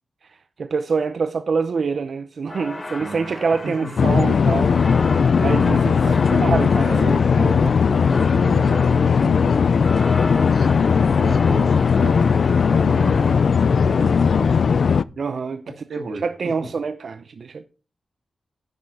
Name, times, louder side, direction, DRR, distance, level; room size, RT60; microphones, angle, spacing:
voice 1, 0.3-4.7 5.4-7.1 15.2-15.6 16.2-17.6, right 5 dB, 65° right, 0.6 m, -25 dB
sound 1, 2.5-13.4, left 2 dB, 30° left, 1.2 m, -34 dB
voice 2, 3.0-3.3 3.6-3.9 6.0-6.2 6.8-9.7 11.1-14.6 15.9-16.5, right 3 dB, 80° right, 2.1 m, -34 dB
sound 2, 4.0-15.0, left 6 dB, 70° left, 0.3 m, -18 dB
10.5 x 7.5 x 4.0 m
wide cardioid pair, 100°, 0 cm